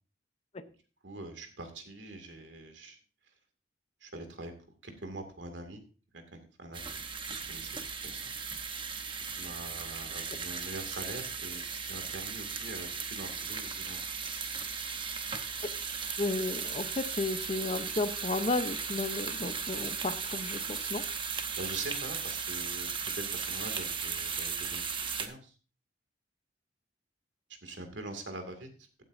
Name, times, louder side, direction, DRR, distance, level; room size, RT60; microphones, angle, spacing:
voice 1, 1.0-3.0 4.0-4.5 4.8-5.8 6.1-7.0 7.3-8.4 9.4-14.0 21.5-22.9 23.1-25.5 27.6-28.7, right 2 dB, 80° right, 6 dB, 2.3 m, -44 dB
sound 1, 6.7-25.3, right 6 dB, 30° right, 1.0 m, -36 dB
voice 2, 16.2-21.0, left 2 dB, 35° left, 11 dB, 0.7 m, -33 dB
15.5 x 9.0 x 2.6 m, 0.36 s
head